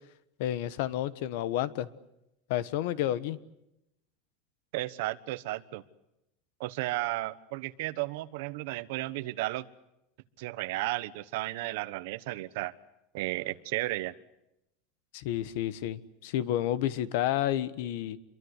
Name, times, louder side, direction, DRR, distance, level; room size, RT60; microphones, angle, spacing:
voice 1, 0.4-1.9 2.5-3.4 15.1-18.2, left 12 dB, 60° left, 15 dB, 1.3 m, -30 dB
voice 2, 4.7-5.8 6.6-9.7 10.4-12.7 13.1-14.1, right 18 dB, 60° right, 13 dB, 1.2 m, -33 dB
28.0 x 23.0 x 8.2 m, 0.86 s
supercardioid pair, 175°, 0 cm